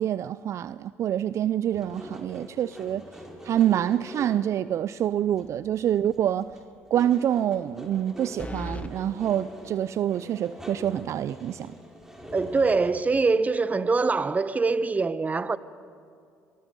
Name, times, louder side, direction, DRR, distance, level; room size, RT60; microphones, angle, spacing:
voice 1, 0.0-3.0 3.4-6.5 6.9-11.7, right 10 dB, 55° right, 0.5 m, -26 dB
sound 1, 1.7-4.5 4.9-5.0 5.3-6.2 6.4-12.9, equal, 10° right, 4.4 m, -44 dB
sound 2, 5.3-5.7 6.1-6.2 8.4-8.9, left 1 dB, 25° left, 1.6 m, -37 dB
voice 2, 12.3-15.6, right 4 dB, 25° right, 0.9 m, -24 dB
24.0 x 19.0 x 7.5 m
hypercardioid pair, 65°, 6 cm